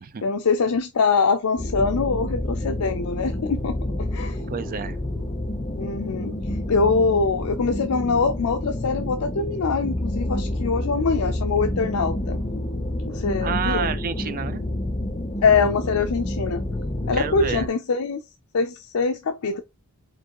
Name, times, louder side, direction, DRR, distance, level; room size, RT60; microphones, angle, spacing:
voice 1, 0.2-3.8 4.1-4.4 5.8-12.4 13.1-13.9 15.4-16.6 17.1-18.2 18.5-19.6, left 4 dB, 70° left, 0.5 m, -23 dB
sound 1, 1.6-17.7, left 1 dB, 25° left, 0.6 m, -28 dB
voice 2, 4.5-5.0 13.4-14.7 17.1-17.7, right 7 dB, 40° right, 0.4 m, -29 dB
4.7 x 3.6 x 2.9 m
head